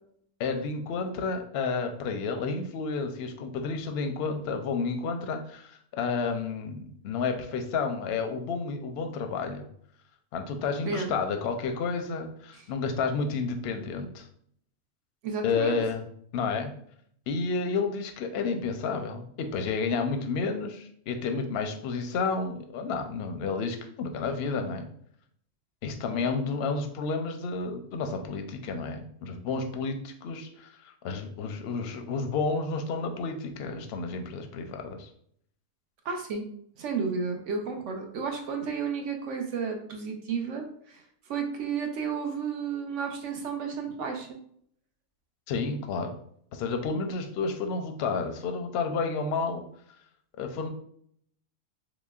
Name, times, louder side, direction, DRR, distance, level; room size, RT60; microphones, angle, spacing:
voice 1, 0.4-9.7 10.3-14.3 15.4-16.0 16.3-16.7 17.3-24.9 25.8-35.1 45.5-46.1 46.5-49.6 50.4-50.7, left 4 dB, 60° left, 5 dB, 0.7 m, -31 dB
voice 2, 15.2-15.8 36.0-36.4 36.8-41.0 41.3-44.4, right 5 dB, 65° right, 3 dB, 0.9 m, -32 dB
5.9 x 2.1 x 2.3 m, 0.64 s
omnidirectional pair, 1.4 m